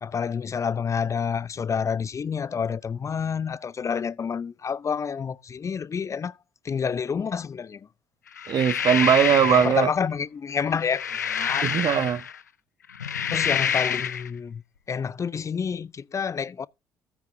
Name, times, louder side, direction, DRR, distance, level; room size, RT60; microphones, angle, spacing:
voice 1, 0.0-6.3 6.6-7.8 9.5-11.0 11.3-11.7 13.3-14.6 14.9-16.7, left 6 dB, 35° left, 0.5 m, -28 dB
sound 1, 8.4-9.8 10.7-12.4 12.9-14.3, left 8 dB, 90° left, 0.5 m, -27 dB
voice 2, 8.5-9.9 11.6-12.2, right 9 dB, 50° right, 0.9 m, -20 dB
14.0 x 8.3 x 2.7 m
figure-of-eight pair, 50°, 9 cm